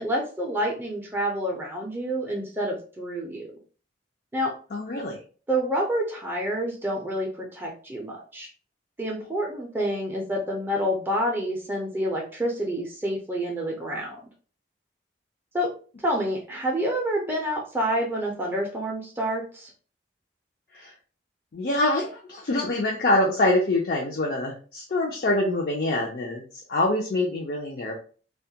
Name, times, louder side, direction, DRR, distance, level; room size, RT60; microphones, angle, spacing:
voice 1, 0.0-3.5 4.3-4.5 5.5-8.5 9.0-14.2 15.5-15.7 16.0-19.7, equal, 10° right, -2 dB, 0.4 m, -28 dB
voice 2, 4.7-5.2 20.7-20.9 21.5-26.4 26.7-28.0, left 1 dB, 55° left, -1 dB, 0.4 m, -25 dB
2.2 x 2.1 x 2.7 m, 0.39 s
head